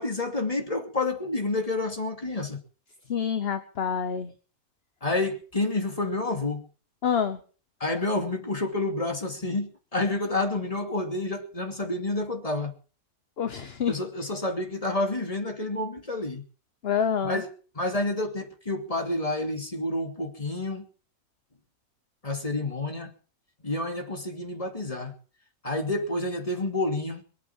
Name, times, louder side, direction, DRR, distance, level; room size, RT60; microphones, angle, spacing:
voice 1, 0.0-2.6 5.0-6.7 7.8-12.7 13.9-16.4 17.2-17.5 17.7-20.9 22.2-23.1 23.6-25.1 25.6-27.2, left 2 dB, 25° left, 2.7 m, -29 dB
voice 2, 3.1-4.3 7.0-7.4 13.4-13.9 16.8-17.4, left 7 dB, 45° left, 1.2 m, -27 dB
22.0 x 8.4 x 7.2 m
omnidirectional pair, 1.6 m